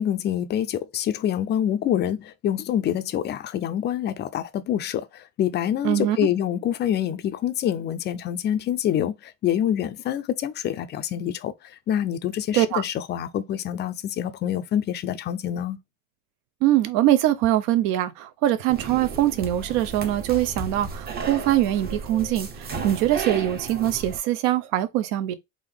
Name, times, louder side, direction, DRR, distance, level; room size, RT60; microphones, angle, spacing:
voice 1, 0.0-15.8, left 10 dB, 30° left, 0.4 m, -26 dB
voice 2, 5.8-6.2 12.5-12.8 16.6-25.3, right 13 dB, 65° right, 0.7 m, -23 dB
sound 1, 18.7-24.2, right 4 dB, 25° right, 0.7 m, -34 dB
3.8 x 2.6 x 3.3 m
supercardioid pair, 125°, 38 cm